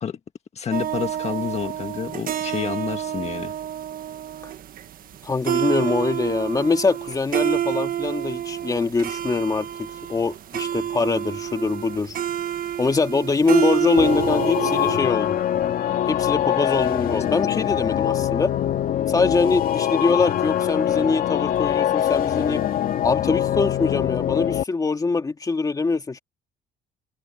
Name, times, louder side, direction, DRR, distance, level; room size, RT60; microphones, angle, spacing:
voice 1, 0.5-3.5, left 7 dB, 40° left, 1.6 m, -29 dB
sound 1, 0.7-15.0, right 11 dB, 55° right, 1.6 m, -28 dB
voice 2, 5.2-12.2 12.8-15.4 16.1-18.5 19.1-22.7 23.0-26.2, left 4 dB, 20° left, 2.0 m, -23 dB
sound 2, 14.0-24.6, left 11 dB, 60° left, 2.1 m, -23 dB
cardioid pair, 110°, 17 cm